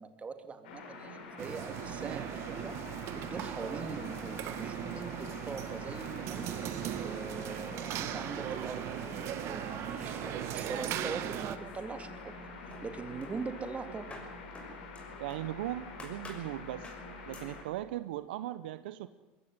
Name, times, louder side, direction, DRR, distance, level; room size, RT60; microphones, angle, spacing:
voice 1, 0.0-2.8 3.1-6.6 6.9-12.4 12.8-14.1, right 4 dB, 25° right, 8 dB, 2.8 m, -42 dB
sound 1, 0.6-17.6, left 3 dB, 85° left, 4.7 m, -46 dB
sound 2, 1.4-11.6, right 12 dB, 55° right, 1.6 m, -38 dB
sound 3, 11.6-12.4 12.7-15.5 16.0-16.5 16.8-17.1 17.3-17.6, left 2 dB, 20° left, 6.2 m, -51 dB
voice 2, 15.2-16.9 17.2-19.1, right 14 dB, 80° right, 14 dB, 0.9 m, -38 dB
21.5 x 16.5 x 9.7 m, 1.1 s
supercardioid pair, 100°, 5 cm